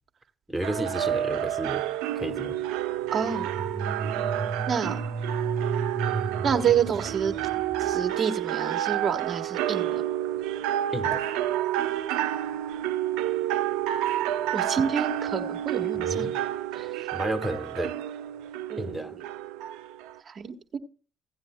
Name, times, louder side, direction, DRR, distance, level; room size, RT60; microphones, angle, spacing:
voice 1, 0.5-1.8 2.1-2.6 10.9-11.2 15.9-16.4 17.1-17.9 18.8-19.2, right 1 dB, 5° right, 1.5 m, -32 dB
sound 1, 0.6-20.2, right 12 dB, 80° right, 0.5 m, -29 dB
voice 2, 3.1-3.5 4.7-5.0 6.4-7.3 7.8-10.0 14.5-16.3 16.7-16.9 18.7-19.0 20.3-20.8, right 7 dB, 55° right, 1.3 m, -28 dB
sound 2, 3.2-8.1, right 4 dB, 40° right, 1.5 m, -33 dB
16.5 x 9.5 x 2.2 m
hypercardioid pair, 50°, 0 cm